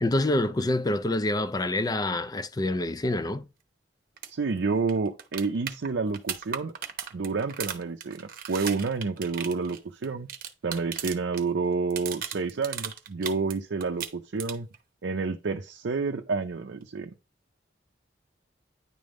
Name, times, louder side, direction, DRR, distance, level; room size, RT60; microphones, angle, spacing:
voice 1, 0.0-3.5, left 1 dB, 20° left, 0.4 m, -26 dB
sound 1, 4.2-4.3 4.6-4.7 4.9-11.4 11.7-13.5 13.8-14.8 16.8-16.9, right 8 dB, 50° right, 0.9 m, -36 dB
voice 2, 4.3-6.7 7.1-10.3 10.6-14.7 15.0-17.1, right 4 dB, 75° right, 0.5 m, -29 dB
9.8 x 3.5 x 3.7 m
head